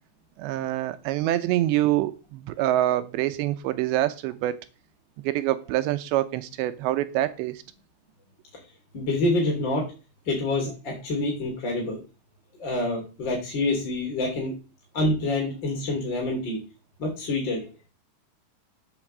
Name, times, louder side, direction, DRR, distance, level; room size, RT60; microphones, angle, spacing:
voice 1, 0.4-4.6 5.2-7.6, right 14 dB, 80° right, 2.8 m, -25 dB
voice 2, 8.9-9.8 10.3-12.0 12.6-14.5 14.9-16.6 17.0-17.7, left 2 dB, 30° left, 3.0 m, -26 dB
8.1 x 7.3 x 7.4 m
omnidirectional pair, 5.4 m